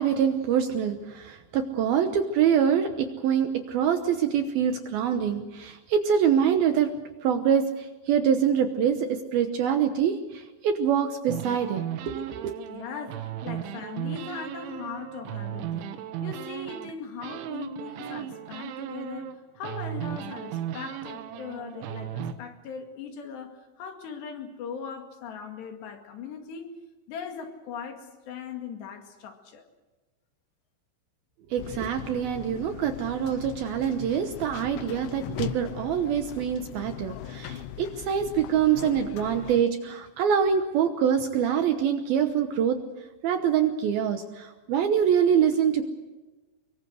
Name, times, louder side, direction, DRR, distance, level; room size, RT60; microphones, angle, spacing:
voice 1, 0.0-6.9 7.2-12.5 31.5-42.8 43.2-45.8, right 8 dB, 70° right, 7 dB, 2.5 m, -25 dB
sound 1, 11.3-16.9 17.2-19.3 19.6-22.3, right 11 dB, 90° right, 3.7 m, -36 dB
voice 2, 12.7-26.7 27.1-29.6, left 6 dB, 70° left, 4 dB, 4.2 m, -39 dB
sound 2, 31.6-39.7, left 11 dB, 90° left, 3.3 m, -39 dB
24.5 x 23.0 x 6.3 m, 1.2 s
omnidirectional pair, 5.3 m